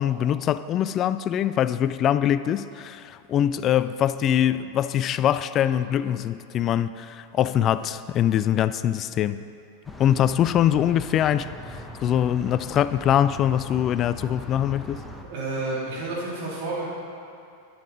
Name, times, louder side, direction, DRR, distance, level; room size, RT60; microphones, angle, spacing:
voice 1, 0.0-9.4 10.0-11.5 12.0-15.0, left 10 dB, 30° left, 0.3 m, -23 dB
sound 1, 9.8-15.2, left 2 dB, 5° left, 1.0 m, -40 dB
voice 2, 15.3-16.8, right 2 dB, 50° right, 2.6 m, -30 dB
9.6 x 9.0 x 5.1 m
figure-of-eight pair, 90°, 0 cm